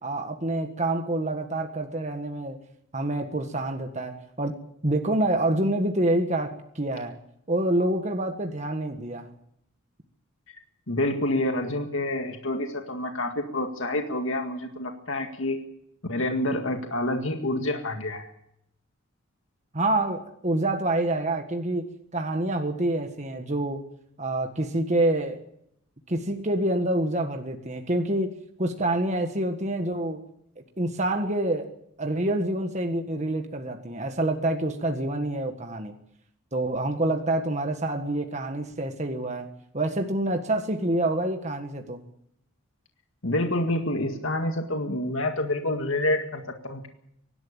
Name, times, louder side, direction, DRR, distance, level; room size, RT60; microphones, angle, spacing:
voice 1, 0.0-2.6 2.9-4.6 4.8-7.1 7.5-9.3 19.7-23.8 24.2-25.4 26.1-30.2 30.8-31.7 32.0-35.9 36.5-39.5 39.7-42.0, right 1 dB, 35° right, 5 dB, 1.6 m, -27 dB
voice 2, 10.9-15.6 16.0-18.3 43.2-46.9, left 1 dB, 65° left, 4 dB, 2.0 m, -28 dB
24.5 x 12.0 x 8.8 m, 0.74 s
head